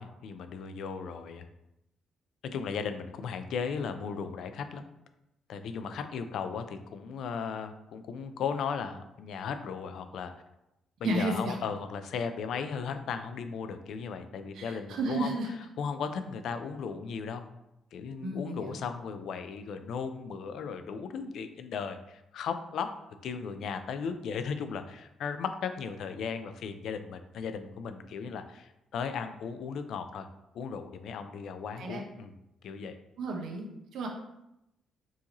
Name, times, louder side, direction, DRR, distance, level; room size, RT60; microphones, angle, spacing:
voice 1, 0.0-1.5 2.4-4.9 5.5-10.3 11.0-15.4 15.8-17.4 17.9-22.9 23.2-30.3 30.5-32.3 32.6-33.0, left 6 dB, 75° left, 9 dB, 0.4 m, -36 dB
voice 2, 11.0-11.6 14.5-15.5 18.2-18.8 31.8-32.0 33.2-33.7 33.9-34.1, right 2 dB, 75° right, 1 dB, 0.8 m, -32 dB
4.7 x 2.6 x 2.9 m, 0.87 s
cardioid pair, 90°, 0 cm